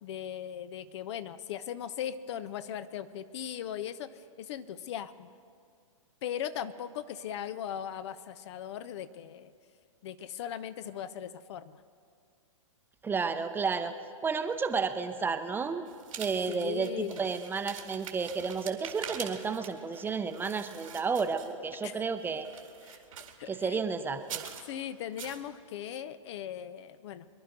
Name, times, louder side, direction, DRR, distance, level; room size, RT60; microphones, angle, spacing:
voice 1, 0.0-5.3 6.2-9.5 10.0-11.8 16.5-17.3 21.8-22.1 22.9-23.0 23.4-23.8 24.7-27.3, left 10 dB, 55° left, 14 dB, 0.7 m, -38 dB
voice 2, 13.0-13.9 14.2-15.8 16.2-22.5 23.5-24.4, right 5 dB, 10° right, 8 dB, 0.7 m, -32 dB
sound 1, 15.8-21.8 22.2-23.5 24.2-24.7 25.2-25.4, right 8 dB, 75° right, 2.1 m, -44 dB
23.5 x 11.0 x 5.2 m, 2.2 s
hypercardioid pair, 120°, 17 cm